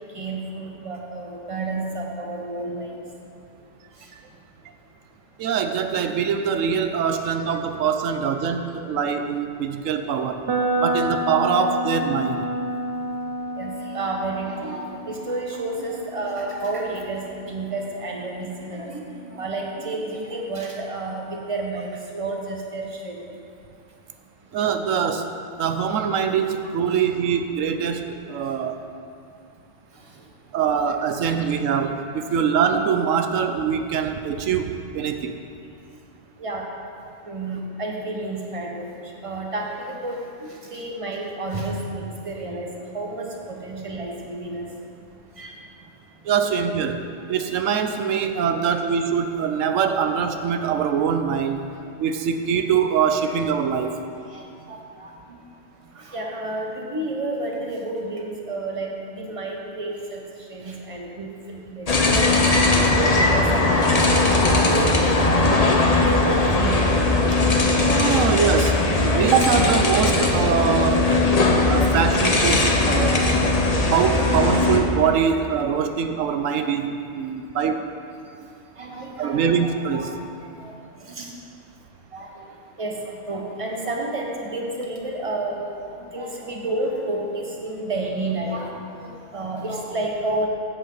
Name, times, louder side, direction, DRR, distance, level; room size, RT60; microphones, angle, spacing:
voice 1, 0.1-3.0 13.6-23.2 36.4-36.7 37.2-38.9 39.2-44.6 45.4-45.6 54.2-55.4 55.9-60.2 60.5-62.7 63.3-66.9 68.1-68.3 74.1-74.2 78.8-80.1 80.4-80.7 81.0-81.3 82.1-82.4 82.8-85.7 86.0-90.5, right 2 dB, 25° right, 0 dB, 1.3 m, -31 dB
voice 2, 5.4-10.5 10.8-12.5 24.5-25.3 25.6-28.8 30.5-35.4 46.2-51.7 52.0-54.0 67.9-71.1 71.7-73.2 73.9-77.9 79.2-80.1, right 7 dB, 90° right, 7 dB, 1.0 m, -23 dB
sound 1, 10.5-18.4, right 1 dB, 60° right, 1.1 m, -29 dB
sound 2, 61.9-74.8, left 2 dB, 35° left, 0.9 m, -19 dB
15.0 x 8.1 x 4.0 m, 2.5 s
omnidirectional pair, 1.3 m